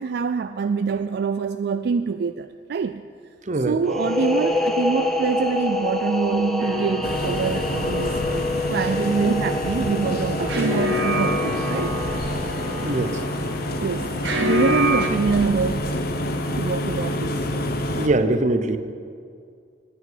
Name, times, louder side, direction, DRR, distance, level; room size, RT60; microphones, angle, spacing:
voice 1, 0.0-3.0 3.7-8.4 8.7-12.0 13.8-16.0 16.6-17.5, right 5 dB, 65° right, 10 dB, 0.4 m, -25 dB
voice 2, 3.5-3.8 12.8-13.2 17.9-18.8, right 2 dB, 40° right, 10 dB, 0.8 m, -22 dB
sound 1, 3.8-13.3, left 1 dB, ahead, 0.7 m, -27 dB
sound 2, 6.6-15.1, left 1 dB, 85° right, 1.6 m, -28 dB
sound 3, 7.0-18.1, left 1 dB, 60° left, 0.9 m, -28 dB
9.6 x 9.4 x 9.2 m, 2.3 s
head